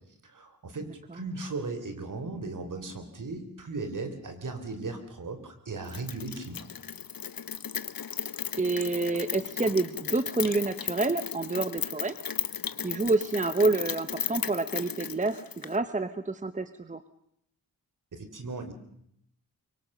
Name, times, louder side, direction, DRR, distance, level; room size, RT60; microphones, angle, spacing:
voice 1, 0.2-6.7 18.1-18.7, right 3 dB, 55° right, 8 dB, 3.7 m, -37 dB
Rain, 5.9-15.8, left 8 dB, 70° left, 1.2 m, -36 dB
voice 2, 8.6-12.1 12.8-17.0, right 3 dB, 20° right, 12 dB, 0.9 m, -28 dB
25.0 x 23.0 x 6.7 m, 0.74 s
wide cardioid pair, 140°, 37 cm